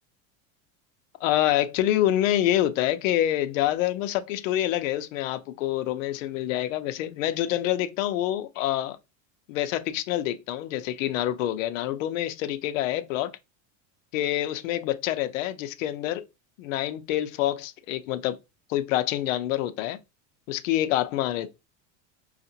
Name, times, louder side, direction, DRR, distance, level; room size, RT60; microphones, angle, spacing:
voice 1, 1.2-9.0 9.5-13.3 14.1-16.2 16.6-18.4 18.7-20.0 20.5-21.5, left 13 dB, 80° left, 0.7 m, -26 dB
5.6 x 2.4 x 2.8 m
supercardioid pair, 170°, 39 cm